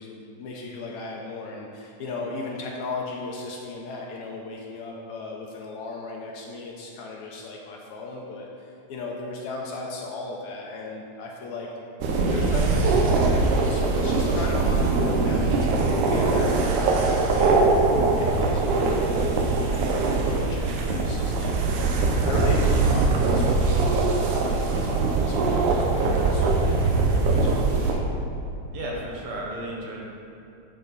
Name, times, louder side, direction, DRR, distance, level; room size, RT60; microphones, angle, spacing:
voice 1, 0.0-11.7 12.3-17.9 18.2-19.9 20.2-28.1, left 3 dB, 80° left, -2 dB, 1.9 m, -36 dB
sound 1, 12.0-27.9, right 3 dB, 80° right, 2.2 m, -22 dB
voice 2, 28.7-30.0, right 1 dB, 65° right, -2 dB, 2.2 m, -33 dB
11.0 x 4.3 x 4.0 m, 2.7 s
omnidirectional pair, 3.5 m